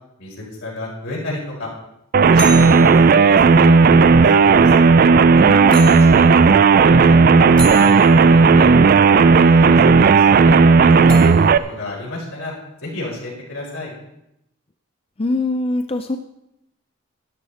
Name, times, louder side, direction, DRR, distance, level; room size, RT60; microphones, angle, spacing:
voice 1, 0.2-1.7 2.3-4.8 6.1-8.7 9.1-11.3 11.7-12.5 12.8-13.9, left 2 dB, 80° left, -4 dB, 4.9 m, -31 dB
sound 1, 2.1-11.6, right 4 dB, 40° right, 0.3 m, -12 dB
sound 2, 2.4-3.1 5.7-6.3 7.6-8.1 11.1-11.7, equal, 5° left, 1.5 m, -30 dB
voice 2, 5.4-6.0 15.2-16.2, left 2 dB, 25° left, 7 dB, 0.4 m, -23 dB
12.5 x 12.0 x 4.2 m, 0.84 s
head